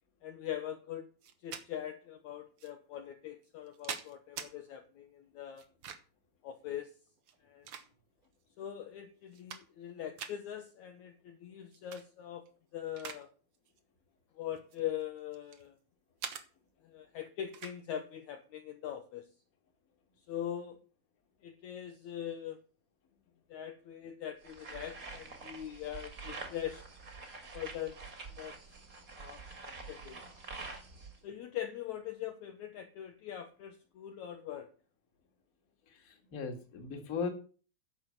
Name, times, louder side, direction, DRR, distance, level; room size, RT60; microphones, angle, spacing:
voice 1, 0.2-1.1 1.4-5.7 6.4-6.9 7.4-7.7 8.6-12.5 12.7-13.3 14.4-15.8 16.8-19.3 20.3-20.8 21.4-22.6 23.5-26.8 27.5-28.0 28.4-28.6 29.2-30.3 31.2-34.7, left 10 dB, 70° left, 6 dB, 2.0 m, -42 dB
sound 1, 1.2-1.7 2.6-2.7 3.4-4.5 5.6-6.2 7.2-8.3 8.8-8.9 9.2-9.9 10.2-10.4 11.7-12.0 12.5-13.3 13.5-13.8 14.6-15.7 16.2-16.5 17.5-17.8, right 8 dB, 70° right, 1.3 m, -44 dB
sound 2, 24.4-31.2, right 4 dB, 30° right, 1.8 m, -47 dB
voice 2, 35.9-37.3, left 5 dB, 30° left, 4 dB, 2.0 m, -38 dB
10.0 x 6.8 x 7.3 m, 0.37 s
omnidirectional pair, 4.1 m